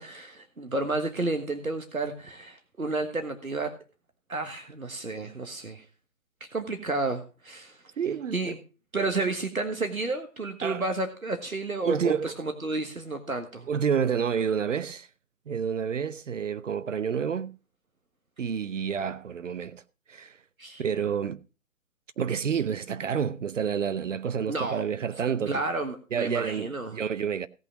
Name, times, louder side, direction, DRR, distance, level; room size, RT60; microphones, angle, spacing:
voice 1, 0.0-3.7 4.3-5.8 6.4-7.8 8.3-8.6 8.9-13.7 20.6-20.8 24.5-24.9 25.5-27.0, right 3 dB, 90° right, 1.6 m, -31 dB
voice 2, 8.0-8.5 10.6-10.8 11.8-12.3 13.7-15.1 15.5-17.5 18.4-19.8 20.1-20.4 20.8-21.4 22.2-25.6 26.1-27.5, right 7 dB, 65° right, 0.7 m, -29 dB
17.0 x 5.7 x 5.1 m
figure-of-eight pair, 130°, 41 cm